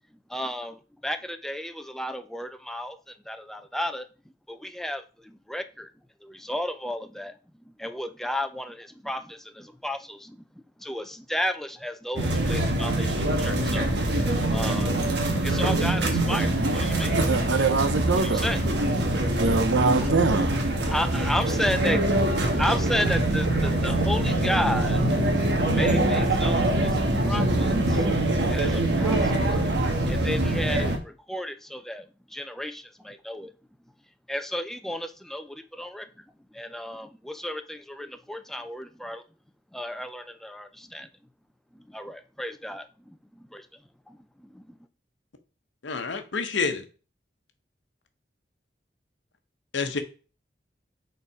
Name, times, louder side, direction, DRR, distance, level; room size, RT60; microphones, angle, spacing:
voice 1, 0.3-3.0 3.3-4.1 4.5-5.9 6.2-7.3 7.8-10.4 10.8-13.9 14.5-14.9 15.4-17.2 18.1-19.0 20.0-20.1 20.8-22.0 22.6-25.0 25.7-27.0 27.3-28.1 28.5-29.5 29.9-33.5 34.3-36.1 36.5-39.2 39.7-41.1 41.9-43.1 43.5-43.7 44.1-44.6, left 1 dB, ahead, 0.5 m, -33 dB
sound 1, 12.2-31.0, right 1 dB, 70° right, 1.3 m, -24 dB
voice 2, 17.2-18.5 19.3-20.5, right 4 dB, 90° right, 0.7 m, -24 dB
voice 3, 45.8-46.8 49.7-50.0, left 5 dB, 85° left, 0.9 m, -28 dB
6.8 x 4.0 x 4.9 m
head